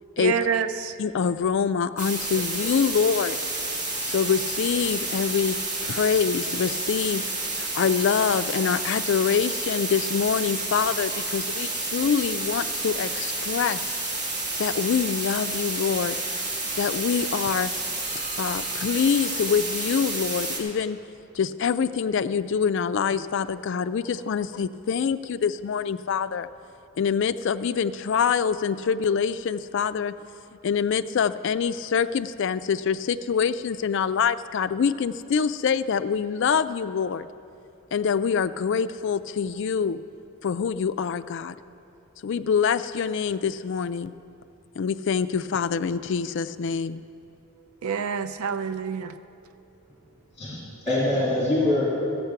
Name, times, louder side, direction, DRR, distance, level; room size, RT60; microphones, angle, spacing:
voice 1, 0.2-0.9 47.8-49.1, right 7 dB, 80° right, 12 dB, 0.5 m, -27 dB
voice 2, 1.0-3.4 4.0-5.6 5.8-7.2 7.5-13.8 14.6-16.2 16.8-17.7 18.4-21.0 21.3-26.5 27.0-30.2 30.6-37.3 37.9-40.0 40.4-41.6 42.2-44.1 44.8-47.0, left 6 dB, 55° left, 13 dB, 0.3 m, -25 dB
sound 1, 2.0-20.6, right 2 dB, 35° right, 1.6 m, -30 dB
voice 3, 50.4-51.9, left 1 dB, 25° left, -6 dB, 2.3 m, -24 dB
14.0 x 8.1 x 5.8 m, 2.7 s
head